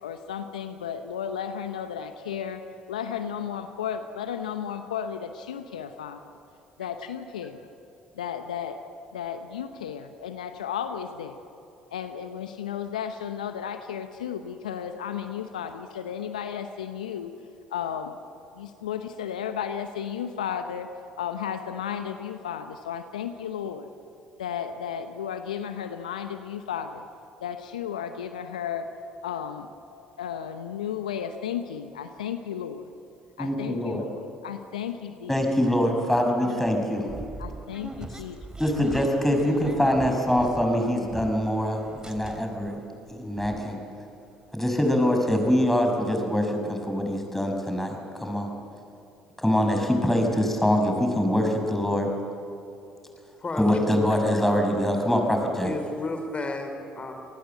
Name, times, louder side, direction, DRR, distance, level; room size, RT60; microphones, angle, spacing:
voice 1, 0.0-2.6 2.9-6.2 6.8-7.6 8.1-8.8 9.1-11.4 11.9-17.3 17.7-18.2 18.5-20.9 21.2-23.9 24.4-27.0 27.4-28.9 29.2-32.9 33.4-35.3 36.4-36.6 37.4-38.4 39.3-39.8, left 8 dB, 85° left, 8 dB, 0.9 m, -34 dB
voice 2, 33.4-34.0 35.3-37.1 38.6-42.8 43.1-43.8 44.5-48.5 49.4-52.1 53.6-55.7, equal, 5° left, 3 dB, 5.9 m, -24 dB
sound 1, 37.1-41.6 41.8-42.7 43.1-43.2 43.4-43.6, right 2 dB, 20° right, 2.7 m, -39 dB
voice 3, 55.6-57.1, left 2 dB, 30° left, 6 dB, 4.6 m, -32 dB
27.0 x 19.5 x 8.0 m, 2.7 s
hypercardioid pair, 55°, 4 cm